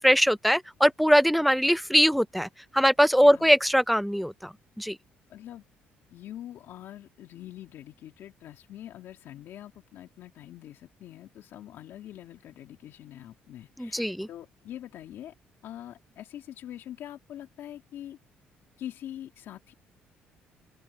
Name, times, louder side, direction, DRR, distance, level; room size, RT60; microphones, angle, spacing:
voice 1, 0.0-5.0 13.8-14.3, equal, ahead, 0.4 m, -22 dB
voice 2, 3.2-3.5 5.3-5.6 6.1-15.3 15.6-18.2 18.8-19.7, left 12 dB, 70° left, 2.2 m, -44 dB
open air
supercardioid pair, 75°, 4 cm